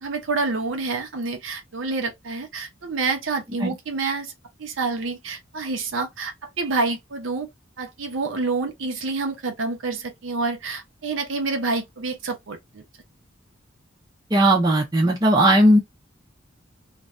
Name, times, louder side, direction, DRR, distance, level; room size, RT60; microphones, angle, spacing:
voice 1, 0.0-4.3 4.6-7.5 7.8-12.8, right 3 dB, 80° right, 0.8 m, -28 dB
voice 2, 14.3-15.8, right 1 dB, 20° right, 0.5 m, -17 dB
2.6 x 2.2 x 3.1 m
head